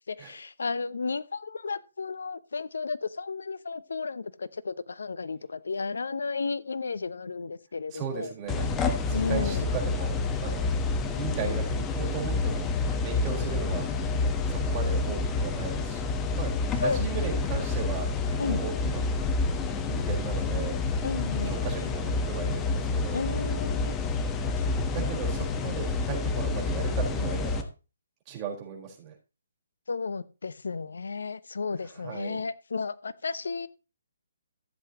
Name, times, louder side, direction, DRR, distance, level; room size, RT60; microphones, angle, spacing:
voice 1, 0.1-8.3 9.1-9.6 16.8-17.0 18.4-18.6 21.0-21.5 23.1-23.9 25.0-25.1 29.9-33.7, left 4 dB, 70° left, 0.7 m, -33 dB
voice 2, 7.9-8.7 9.1-10.7 11.2-13.9 14.5-16.5 16.8-19.1 19.9-20.8 21.4-23.2 24.9-27.7 28.3-29.1 31.8-32.4, right 7 dB, 25° right, 4.7 m, -36 dB
sound 1, 8.5-27.6, left 3 dB, 15° left, 1.3 m, -28 dB
14.5 x 8.0 x 3.1 m
figure-of-eight pair, 140°, 0 cm